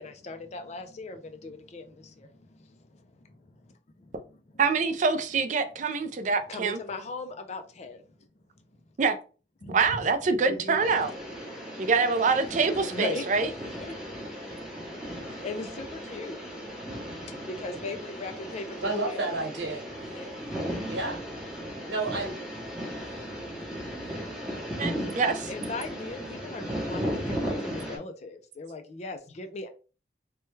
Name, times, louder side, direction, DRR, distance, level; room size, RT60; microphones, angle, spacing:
voice 1, 0.0-4.1 6.5-8.0 9.6-10.0 10.5-10.8 12.9-13.3 13.6-16.4 17.2-19.3 20.1-20.4 25.0-29.7, left 3 dB, 35° left, 0.4 m, -39 dB
voice 2, 4.6-6.8 9.0-9.2 9.7-11.1 11.8-13.5 24.8-25.3, right 4 dB, 40° right, 0.4 m, -25 dB
sound 1, 10.8-28.0, equal, 5° right, 0.7 m, -36 dB
voice 3, 18.8-19.8 20.9-21.2 21.9-22.4, right 2 dB, 90° right, 1.1 m, -30 dB
3.2 x 2.2 x 3.1 m
head